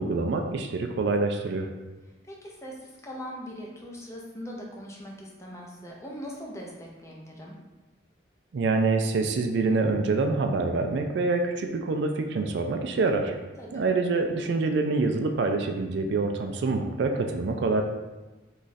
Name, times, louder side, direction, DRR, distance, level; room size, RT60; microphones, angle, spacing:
voice 1, 0.0-1.7 8.5-13.4 13.7-17.8, right 3 dB, 65° right, 4 dB, 0.3 m, -26 dB
voice 2, 2.2-7.6 13.6-13.9, equal, 15° left, -2 dB, 0.5 m, -41 dB
3.1 x 2.4 x 4.0 m, 1.1 s
head